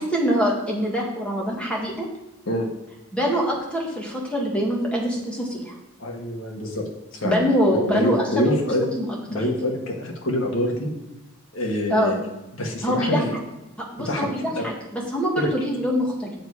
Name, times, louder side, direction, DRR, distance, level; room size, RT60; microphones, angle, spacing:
voice 1, 0.0-2.1 3.1-5.8 7.2-8.5 9.0-9.1 11.9-12.2 12.8-13.2 13.9-14.4 14.6-16.3, equal, 5° left, -3 dB, 1.8 m, -24 dB
voice 2, 6.0-7.3 7.9-8.9 9.3-10.9 11.5-12.2 12.5-13.3 14.0-14.3 14.5-14.6 15.4-15.5, left 1 dB, 85° left, 1 dB, 1.7 m, -25 dB
7.4 x 7.2 x 4.9 m, 0.94 s
head